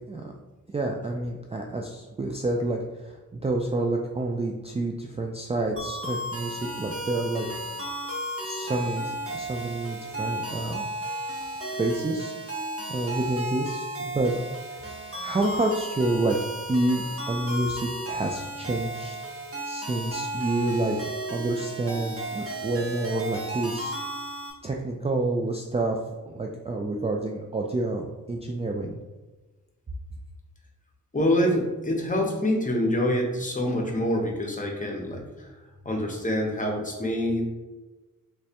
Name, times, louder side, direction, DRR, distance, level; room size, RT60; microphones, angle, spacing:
voice 1, 0.7-7.5 8.4-10.9 11.7-12.3 12.9-14.4 14.7-16.4 16.7-19.2 19.6-23.9 24.6-26.0 26.2-29.0, right 2 dB, 20° right, 0 dB, 0.3 m, -28 dB
sound 1, 5.8-24.5, right 1 dB, 45° right, 0.9 m, -34 dB
voice 2, 31.1-35.5 35.8-37.5, left 1 dB, 25° left, 0 dB, 0.9 m, -26 dB
3.3 x 3.1 x 2.8 m, 1.2 s
cardioid pair, 65°, 33 cm